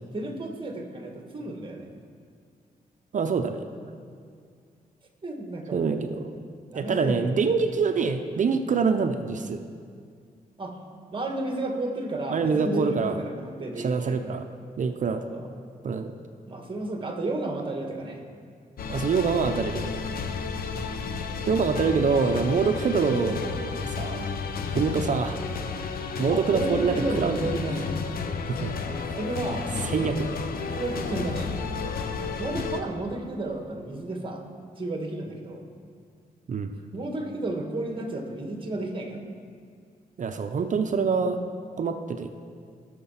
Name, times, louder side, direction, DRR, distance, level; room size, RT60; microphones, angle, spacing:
voice 1, 0.1-1.9 5.2-6.0 6.7-7.3 10.6-10.8 11.1-14.4 15.0-15.5 16.5-18.2 24.7-25.0 26.3-28.0 28.8-30.2 30.8-31.5 32.1-34.4 34.8-35.6 36.9-39.3, right 2 dB, 35° right, 3 dB, 1.7 m, -32 dB
voice 2, 3.1-3.7 5.7-6.3 6.7-9.6 12.3-13.2 13.8-14.5 14.8-15.2 15.8-16.1 18.9-20.0 21.5-24.3 24.7-25.4 26.2-27.4 28.5-28.7 29.8-30.3 36.5-36.7 40.2-41.4 41.8-42.3, right 5 dB, 55° right, 7 dB, 0.7 m, -25 dB
sound 1, 18.8-32.8, left 5 dB, 75° left, 0.9 m, -32 dB
Guitar, 29.7-34.5, left 1 dB, 5° left, 1.9 m, -50 dB
15.5 x 6.7 x 5.7 m, 2.2 s
cardioid pair, 90°, 15 cm